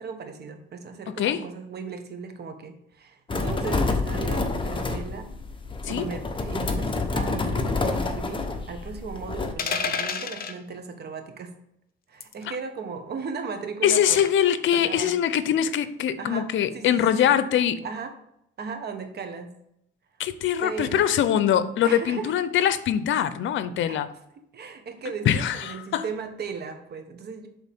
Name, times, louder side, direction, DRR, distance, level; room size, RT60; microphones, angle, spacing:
voice 1, 0.0-5.3 5.8-11.5 12.1-14.3 14.7-15.1 16.2-17.3 17.8-18.1 18.6-19.5 20.6-21.0 21.8-22.3 23.9-24.0 24.5-27.5, right 5 dB, 55° right, 1.4 m, -36 dB
voice 2, 1.1-1.4 5.8-6.1 13.8-17.8 20.2-24.1 25.3-26.0, left 9 dB, 75° left, 0.7 m, -23 dB
sound 1, 3.3-9.5, left 3 dB, 25° left, 1.1 m, -28 dB
sound 2, 9.6-10.6 12.2-12.4 14.2-14.5, left 6 dB, 50° left, 0.9 m, -29 dB
11.0 x 4.1 x 3.6 m
cardioid pair, 90°, 20 cm